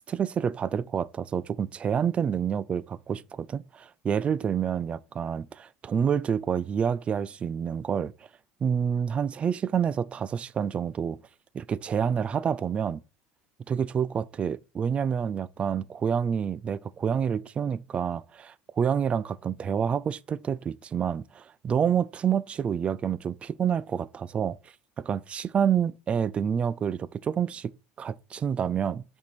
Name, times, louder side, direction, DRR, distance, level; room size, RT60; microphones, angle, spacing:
voice 1, 0.1-8.1 8.6-11.2 11.5-13.0 13.7-24.6 25.0-27.7 28.0-29.0, right 7 dB, 25° right, 0.3 m, -28 dB
5.9 x 4.5 x 4.1 m
supercardioid pair, 135°, 5 cm